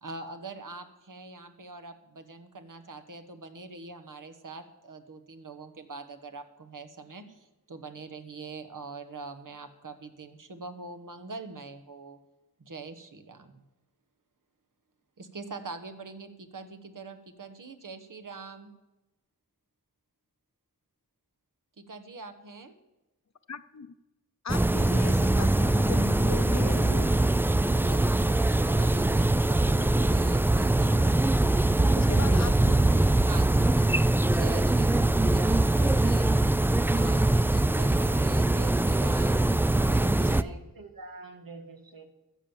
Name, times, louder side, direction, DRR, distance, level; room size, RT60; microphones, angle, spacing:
voice 1, 0.0-12.2 12.6-13.6 15.2-18.7 21.8-22.7 27.8-31.1 33.2-36.3 36.9-39.5 39.9-40.6, right 3 dB, 65° right, 1.3 m, -43 dB
voice 2, 23.5-23.9 24.4-27.2 32.0-33.0, left 5 dB, 55° left, 0.7 m, -38 dB
sound 1, 24.5-40.4, right 2 dB, 5° right, 0.3 m, -23 dB
voice 3, 40.2-42.1, right 3 dB, 85° right, 1.6 m, -46 dB
13.5 x 7.4 x 7.2 m
wide cardioid pair, 60°, 34 cm